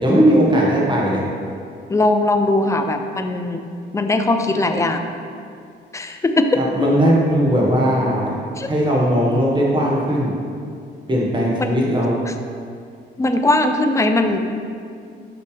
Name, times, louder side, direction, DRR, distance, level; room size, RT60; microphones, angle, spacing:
voice 1, 0.0-1.2 6.5-8.3 8.7-10.3 11.1-12.2, equal, 25° right, -4 dB, 1.6 m, -18 dB
voice 2, 1.9-3.6 3.9-5.1 5.9-6.5 8.6-8.7 11.6-11.8 12.3-12.4 13.2-14.5, left 2 dB, 15° left, 6 dB, 0.5 m, -19 dB
5.9 x 5.9 x 3.4 m, 2.3 s
cardioid pair, 90°, 20 cm